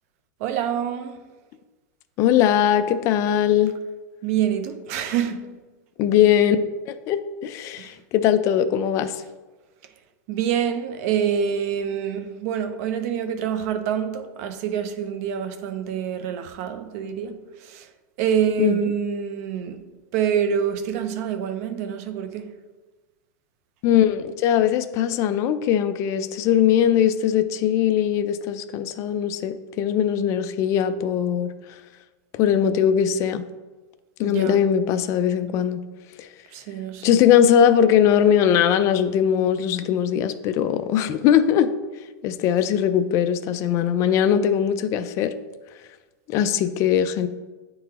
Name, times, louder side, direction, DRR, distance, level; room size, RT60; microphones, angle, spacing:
voice 1, 0.4-1.2 4.2-5.5 7.8-8.0 10.3-17.9 18.2-19.8 20.1-22.5 34.2-34.6 36.5-37.1, right 8 dB, 50° right, 0.6 m, -26 dB
voice 2, 2.2-3.7 6.0-6.6 6.9-9.2 18.6-18.8 23.8-31.5 32.3-33.4 34.2-35.8 36.2-36.3 37.0-41.7 42.2-45.3 46.3-47.3, left 9 dB, 30° left, 0.3 m, -20 dB
9.1 x 3.8 x 2.9 m
supercardioid pair, 155°, 10 cm